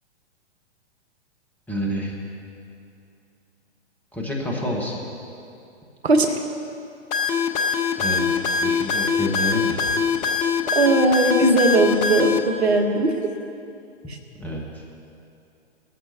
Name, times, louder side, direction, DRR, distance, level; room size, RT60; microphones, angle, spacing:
voice 1, 1.7-2.1 4.1-5.0 8.0-9.8 14.4-14.6, equal, 5° left, -3 dB, 1.8 m, -28 dB
voice 2, 6.0-6.4 10.7-13.1 14.1-14.2, right 2 dB, 65° right, 5 dB, 1.4 m, -19 dB
sound 1, 7.1-12.4, left 5 dB, 20° left, 0.8 m, -22 dB
19.5 x 14.0 x 3.0 m, 2.6 s
figure-of-eight pair, 115°, 34 cm